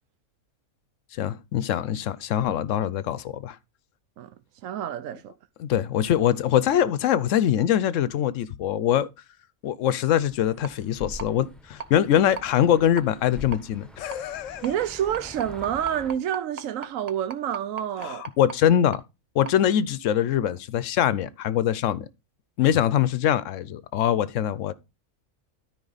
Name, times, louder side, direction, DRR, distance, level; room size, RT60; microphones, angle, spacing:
voice 1, 1.1-3.6 5.6-9.1 9.6-14.6 18.0-19.0 19.3-22.1 22.6-24.7, left 10 dB, 65° left, 0.9 m, -23 dB
voice 2, 4.6-5.3 14.6-18.3, right 10 dB, 70° right, 1.0 m, -28 dB
sound 1, 10.2-16.1, left 2 dB, ahead, 0.8 m, -44 dB
sound 2, 10.6-10.7 11.2-11.3 11.8-11.9 12.4-12.5 13.0-13.1 13.5-13.6 14.1-14.2 14.6-14.7 15.1-18.6 18.9-19.0 19.5-19.6, right 6 dB, 35° right, 0.7 m, -36 dB
13.0 x 4.9 x 4.0 m
omnidirectional pair, 1.5 m